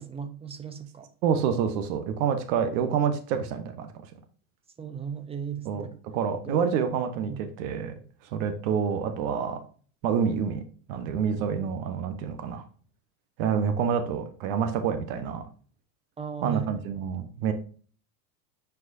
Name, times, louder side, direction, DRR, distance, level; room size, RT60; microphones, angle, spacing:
voice 1, 0.0-1.1 4.8-6.0 6.3-6.6 7.3-7.4 16.2-16.7, right 8 dB, 10° right, 0.8 m, -36 dB
voice 2, 1.2-3.9 5.7-7.9 8.3-9.6 10.0-10.6 10.9-12.6 13.4-15.4 16.4-17.5, right 7 dB, 55° right, 1.2 m, -27 dB
9.4 x 4.8 x 2.7 m
hypercardioid pair, 105°, 48 cm